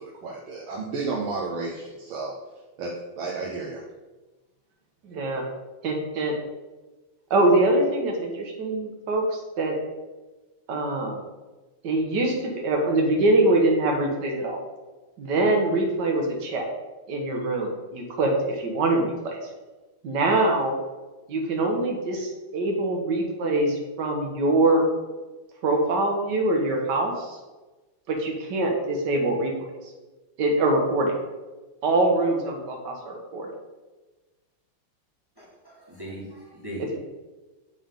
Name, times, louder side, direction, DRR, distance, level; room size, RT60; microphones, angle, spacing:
voice 1, 0.0-2.4 2.8-3.8, right 3 dB, 80° right, -3 dB, 1.7 m, -32 dB
voice 2, 5.0-5.4 5.8-6.3 7.3-9.7 10.7-11.2 11.8-14.6 15.2-16.6 17.1-19.4 20.0-20.7 21.3-24.8 25.6-27.4 28.1-29.7 30.4-31.1 31.8-33.5, right 2 dB, 60° right, 1 dB, 1.7 m, -24 dB
voice 3, 35.4-37.0, equal, 15° right, -5 dB, 1.3 m, -39 dB
10.0 x 3.5 x 3.8 m, 1.2 s
omnidirectional pair, 2.2 m